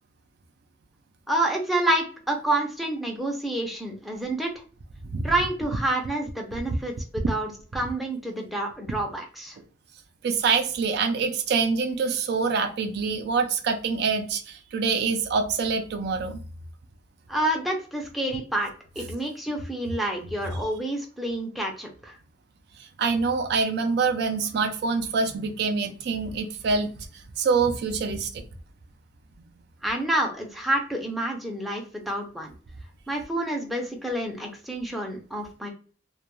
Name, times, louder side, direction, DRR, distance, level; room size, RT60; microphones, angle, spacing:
voice 1, 1.3-4.5 5.2-9.6 17.3-22.1 29.8-32.5 33.1-35.7, right 1 dB, ahead, 0 dB, 0.5 m, -28 dB
voice 2, 10.2-16.4 22.8-27.1 27.4-28.4, right 5 dB, 60° right, 7 dB, 0.4 m, -25 dB
2.2 x 2.2 x 2.9 m, 0.40 s
head